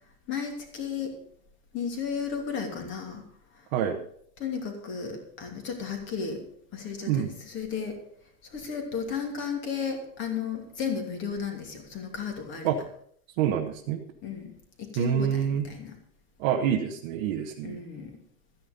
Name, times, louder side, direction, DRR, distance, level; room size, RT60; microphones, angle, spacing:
voice 1, 0.3-1.2 1.7-3.2 4.4-6.4 6.7-8.0 8.5-12.7 14.2-14.5 14.8-16.0 17.6-18.1, left 6 dB, 25° left, 3 dB, 2.8 m, -34 dB
voice 2, 13.4-14.0 14.9-15.6 16.4-17.8, right 9 dB, 35° right, 1 dB, 1.2 m, -26 dB
13.5 x 10.0 x 5.3 m, 0.64 s
supercardioid pair, 160°, 47 cm